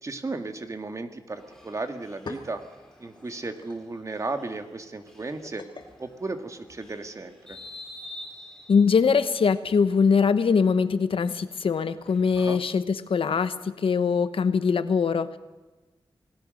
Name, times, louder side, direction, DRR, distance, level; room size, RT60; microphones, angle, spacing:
voice 1, 0.0-2.6 3.0-5.6 6.0-7.6 12.4-12.6, right 3 dB, 35° right, 7 dB, 1.9 m, -35 dB
sound 1, 1.4-12.7, left 1 dB, 5° left, 4.3 m, -49 dB
sound 2, 2.0-7.1, left 3 dB, 55° left, 2.4 m, -47 dB
voice 2, 8.7-15.4, left 5 dB, 80° left, 12 dB, 1.1 m, -22 dB
27.5 x 18.5 x 6.5 m, 1.2 s
wide cardioid pair, 135°, 9 cm